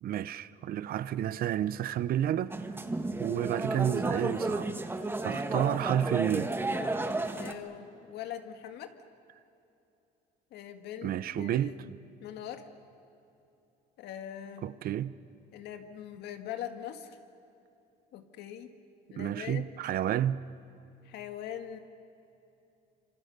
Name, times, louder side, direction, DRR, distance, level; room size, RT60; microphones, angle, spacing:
voice 1, 0.0-2.6 3.2-4.7 5.2-6.5 11.0-11.7 14.6-15.1 19.2-20.4, right 11 dB, 60° right, 0.7 m, -30 dB
sound 1, 2.5-7.5, right 2 dB, 15° right, 1.5 m, -32 dB
voice 2, 7.3-8.9 10.5-11.9 12.2-12.7 14.0-14.7 15.5-17.2 18.1-18.7 19.1-19.6 21.0-21.8, left 10 dB, 80° left, 1.9 m, -42 dB
26.5 x 26.5 x 6.7 m
cardioid pair, 110°, 17 cm